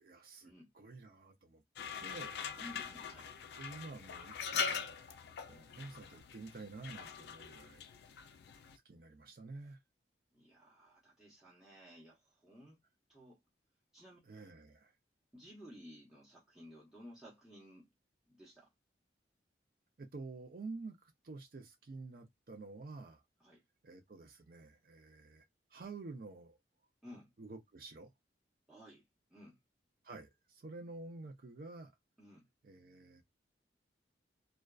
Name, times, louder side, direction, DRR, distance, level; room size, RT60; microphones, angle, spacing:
voice 1, 0.0-1.6 2.0-2.4 3.6-4.9 5.5-7.9 8.8-9.8 14.3-14.9 20.0-23.2 23.8-25.5 25.7-26.6 27.4-28.1 30.0-31.9 32.6-33.2, right 3 dB, 55° right, 0.4 m, -49 dB
sound 1, 1.8-8.8, left 6 dB, 65° left, 0.3 m, -42 dB
voice 2, 2.6-3.3 10.3-12.8 13.1-13.4 13.9-14.2 15.3-17.9 18.3-18.7 23.4-23.6 27.0-27.3 28.7-29.6 32.2-32.5, equal, ahead, 0.7 m, -55 dB
2.4 x 2.2 x 2.3 m
head